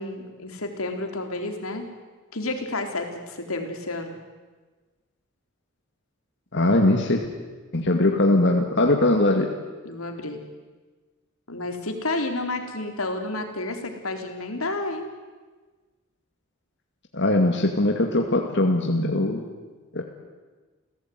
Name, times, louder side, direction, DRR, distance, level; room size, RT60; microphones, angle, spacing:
voice 1, 0.0-1.9 2.3-4.2 9.8-10.4 11.5-15.1, left 2 dB, 85° left, 5 dB, 3.9 m, -30 dB
voice 2, 6.5-7.3 7.7-9.5 17.1-19.4 19.9-20.0, left 2 dB, 55° left, 2 dB, 2.3 m, -21 dB
29.5 x 17.5 x 9.5 m, 1.3 s
head